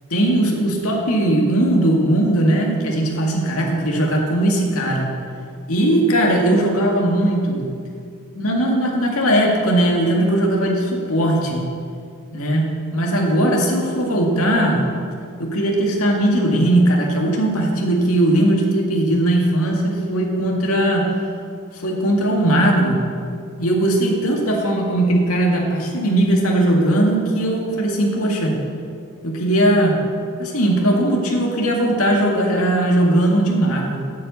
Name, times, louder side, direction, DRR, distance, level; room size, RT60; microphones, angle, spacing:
voice 1, 0.1-5.1 5.7-7.6 8.3-11.6 12.3-14.8 15.4-21.1 21.7-23.0 23.6-28.6 29.2-30.0 30.4-34.0, right 1 dB, 75° left, -1 dB, 2.0 m, -18 dB
9.1 x 7.9 x 8.1 m, 2.3 s
head